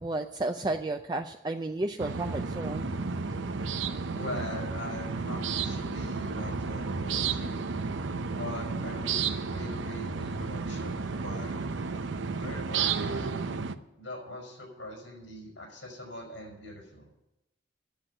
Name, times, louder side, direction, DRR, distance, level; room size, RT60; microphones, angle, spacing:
voice 1, 0.0-2.9, right 2 dB, 20° right, 5 dB, 0.4 m, -32 dB
sound 1, 2.0-13.7, right 5 dB, 85° right, 0.7 m, -32 dB
voice 2, 4.1-7.6 8.3-11.7 12.3-13.4 14.0-17.1, left 1 dB, 90° left, 1 dB, 5.5 m, -42 dB
10.5 x 8.2 x 9.9 m, 0.91 s
head